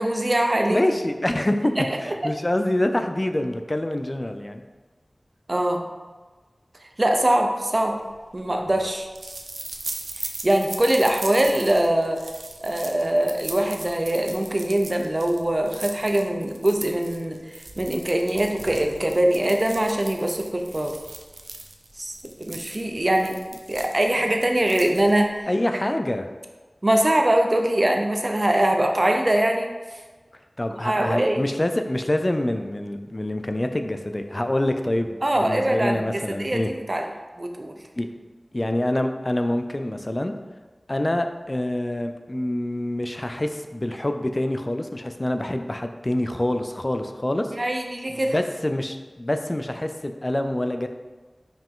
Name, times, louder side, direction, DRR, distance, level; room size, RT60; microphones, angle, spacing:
voice 1, 0.0-0.8 1.8-2.3 5.5-5.8 7.0-8.0 8.3-9.1 10.4-12.3 12.6-21.0 22.0-23.4 23.7-25.5 26.8-29.7 30.8-31.4 35.2-37.1 37.4-37.7 47.5-48.3, right 1 dB, 40° right, 3 dB, 0.8 m, -22 dB
voice 2, 0.7-1.7 2.0-4.6 25.5-26.3 30.6-36.7 38.0-38.1 38.5-40.3 40.9-47.5 48.1-50.9, left 1 dB, 35° left, 6 dB, 0.5 m, -26 dB
sound 1, 7.9-25.4, right 2 dB, 90° right, 0.6 m, -39 dB
5.3 x 4.9 x 3.8 m, 1.3 s
wide cardioid pair, 50°, 0 cm